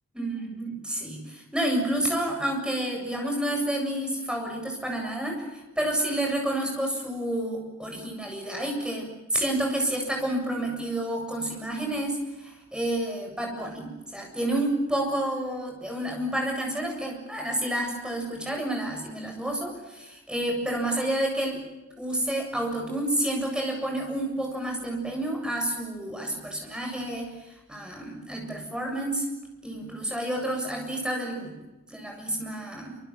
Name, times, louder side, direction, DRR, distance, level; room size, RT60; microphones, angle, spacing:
voice 1, 0.2-21.6 22.0-29.3 29.6-31.5 31.9-33.0, right 1 dB, 5° right, 1 dB, 7.6 m, -29 dB
27.0 x 26.5 x 7.4 m, 1.0 s
head